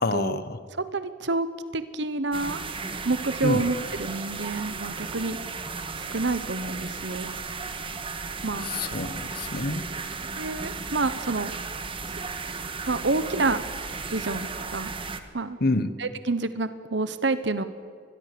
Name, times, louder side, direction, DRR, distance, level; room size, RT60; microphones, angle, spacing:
voice 1, 0.0-0.6 3.4-3.7 8.6-9.9 15.6-15.9, left 2 dB, 55° left, 13 dB, 1.3 m, -27 dB
voice 2, 0.8-1.5 1.7-2.6 3.0-5.4 6.0-7.4 8.4-8.7 10.4-11.5 12.9-13.6 14.1-14.9 15.3-15.6 16.0-17.6, right 3 dB, 70° right, 12 dB, 1.1 m, -28 dB
sound 1, 2.3-15.2, right 4 dB, 30° right, 1.5 m, -35 dB
27.0 x 21.5 x 6.9 m, 2.1 s
head